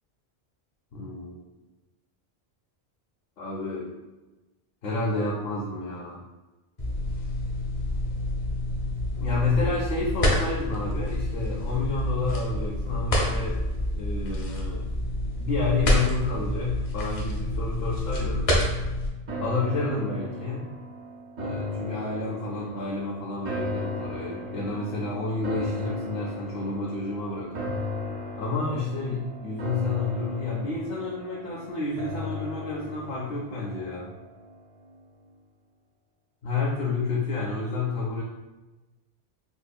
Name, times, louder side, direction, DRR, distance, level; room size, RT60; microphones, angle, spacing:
voice 1, 0.9-1.4 3.4-3.9 4.8-6.2 9.2-13.6 13.9-14.9 15.2-18.5 19.4-20.7 21.4-27.8 28.3-34.1 36.4-38.2, left 3 dB, 75° left, -4 dB, 0.8 m, -30 dB
sound 1, 6.8-19.1, left 1 dB, 40° left, 0.6 m, -28 dB
sound 2, 19.3-34.6 35.0-35.1, left 2 dB, 55° right, 0.6 m, -36 dB
4.1 x 2.6 x 2.2 m, 1.1 s
omnidirectional pair, 1.1 m